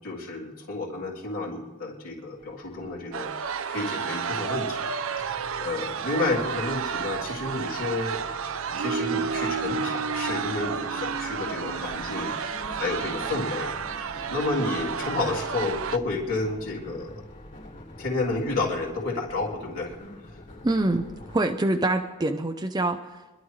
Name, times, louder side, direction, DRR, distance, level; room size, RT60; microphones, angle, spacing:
voice 1, 0.0-4.9 5.2-8.2 8.8-13.7 14.0-17.1 18.0-19.9 20.3-20.4, left 2 dB, 70° left, -5 dB, 3.2 m, -31 dB
sound 1, 2.4-21.4, left 1 dB, 40° left, 3.0 m, -46 dB
sound 2, 3.1-16.0, right 6 dB, 65° right, 0.6 m, -31 dB
voice 2, 20.6-23.4, right 2 dB, 20° right, 5 dB, 0.6 m, -26 dB
25.5 x 12.0 x 3.2 m, 1.2 s
head